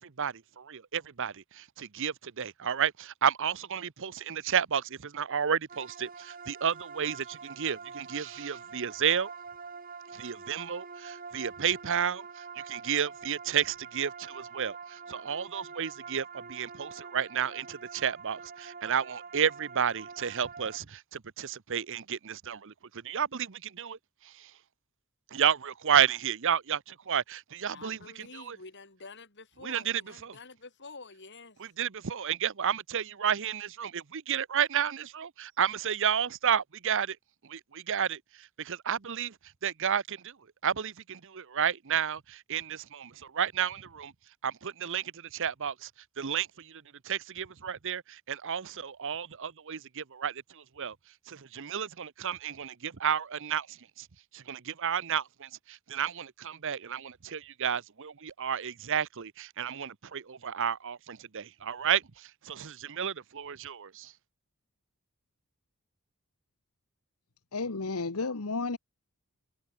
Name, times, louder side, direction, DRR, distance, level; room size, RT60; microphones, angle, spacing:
voice 1, 0.0-9.3 10.1-22.7 23.0-24.0 24.2-24.5 25.3-28.0 28.3-28.6 29.6-30.4 31.6-37.2 37.5-39.3 39.6-40.3 40.6-44.1 44.4-45.9 46.2-50.9 51.3-54.1 54.3-64.1, right 8 dB, 60° right, 0.8 m, -32 dB
sound 1, 5.7-20.8, right 5 dB, 40° right, 6.8 m, -46 dB
voice 2, 27.7-31.6, left 3 dB, 55° left, 6.6 m, -48 dB
voice 3, 67.5-68.8, left 3 dB, 85° left, 1.3 m, -32 dB
head